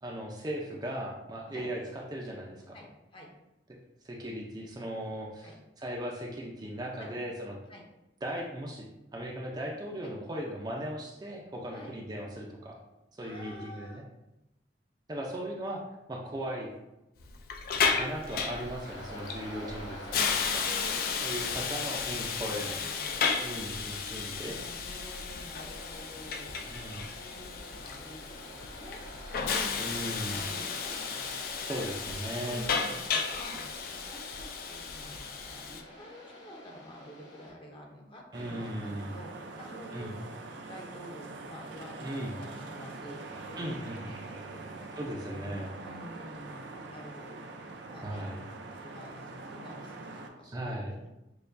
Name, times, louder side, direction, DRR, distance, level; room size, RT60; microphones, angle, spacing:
voice 1, 0.0-2.8 4.0-5.5 5.8-7.6 8.2-12.8 13.1-14.0 15.1-15.8 16.1-16.7 18.0-20.7 21.2-22.8 23.4-24.6 26.7-27.1 29.8-30.5 31.7-32.7 38.3-39.1 39.9-40.1 42.0-42.3 43.6-44.0 45.0-45.7 48.0-48.4 50.4-51.0, right 1 dB, 20° right, -1 dB, 0.4 m, -37 dB
voice 2, 2.7-3.3 5.4-5.6 7.0-7.1 7.7-7.8 10.0-10.1 11.7-12.0 13.2-14.0 20.6-21.9 22.4-23.0 24.5-26.6 27.1-29.0 30.3-31.5 31.8-31.9 32.4-33.6 33.9-40.2 40.7-44.7 45.3-47.4 47.9-48.3 48.8-51.1, left 1 dB, 30° left, 0 dB, 0.7 m, -49 dB
Hiss, 17.2-35.8, left 5 dB, 50° left, 0.3 m, -34 dB
Waves surf, 17.7-37.5, equal, 85° left, 1.3 m, -46 dB
sound 1, 38.3-50.3, right 3 dB, 75° right, 0.5 m, -44 dB
6.6 x 2.2 x 2.5 m, 0.93 s
head